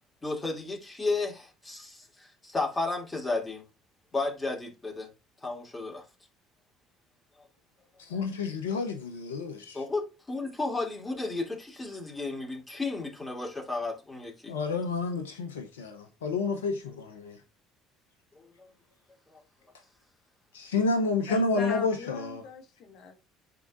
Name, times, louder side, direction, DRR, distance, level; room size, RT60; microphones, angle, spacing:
voice 1, 0.2-3.6 4.1-5.1 5.4-6.0 9.7-14.5 18.6-18.7 19.3-19.4, left 3 dB, 20° left, 2.5 m, -33 dB
voice 2, 8.0-9.8 14.5-17.4 20.5-22.4, left 3 dB, 85° left, 0.7 m, -30 dB
voice 3, 21.3-23.2, left 4 dB, 55° left, 1.4 m, -40 dB
10.5 x 3.7 x 2.5 m
hypercardioid pair, 60°, 0 cm